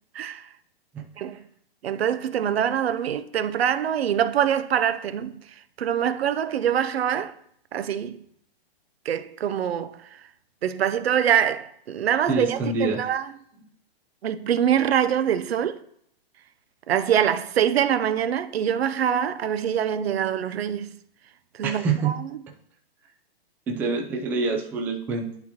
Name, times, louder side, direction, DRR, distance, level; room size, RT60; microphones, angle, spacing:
voice 1, 0.1-0.5 1.2-1.4 1.8-5.4 5.8-7.3 7.7-8.2 9.0-10.2 10.6-13.2 14.2-15.8 16.9-20.9 21.6-22.3, right 9 dB, 80° right, 0.7 m, -24 dB
voice 2, 12.3-13.0 21.6-22.2 23.7-25.3, right 4 dB, 5° right, 0.3 m, -26 dB
11.0 x 4.2 x 2.8 m
hypercardioid pair, 140°, 31 cm